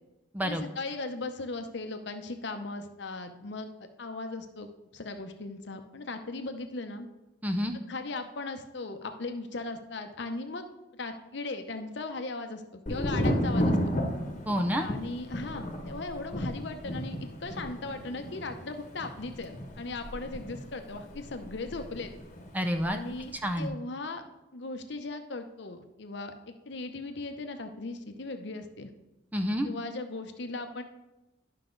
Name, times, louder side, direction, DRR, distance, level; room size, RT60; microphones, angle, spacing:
voice 1, 0.4-7.1 7.9-10.7 11.0-13.8 14.8-22.1 22.9-24.2 24.5-28.9 29.6-30.8, left 3 dB, 60° left, 7 dB, 0.8 m, -38 dB
voice 2, 7.4-7.8 14.5-14.9 22.5-23.0 23.4-23.7 29.3-29.7, equal, 10° right, 6 dB, 0.5 m, -28 dB
Thunder, 12.9-22.5 22.8-23.5, equal, 40° left, 1.2 m, -33 dB
11.5 x 5.8 x 3.9 m, 0.98 s
head